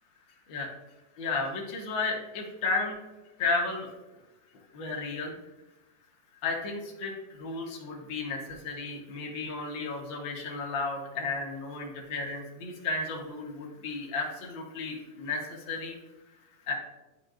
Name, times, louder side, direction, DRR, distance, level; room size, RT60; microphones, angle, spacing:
voice 1, 1.2-3.0 3.4-3.9 4.7-5.4 6.4-16.0 16.7-16.8, left 3 dB, 70° left, 0 dB, 1.1 m, -33 dB
9.6 x 6.2 x 2.5 m, 1.1 s
omnidirectional pair, 3.8 m